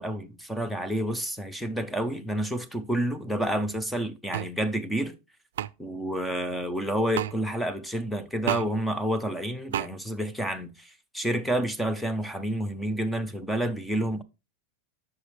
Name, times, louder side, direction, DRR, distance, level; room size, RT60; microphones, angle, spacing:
voice 1, 0.0-5.1 5.8-14.2, right 1 dB, ahead, 0.4 m, -29 dB
sound 1, 4.3-4.5 5.6-5.7 7.1-7.3 8.5-8.7 9.7-9.9, right 11 dB, 90° right, 0.3 m, -29 dB
8.2 x 5.6 x 3.2 m
supercardioid pair, 175°, 0 cm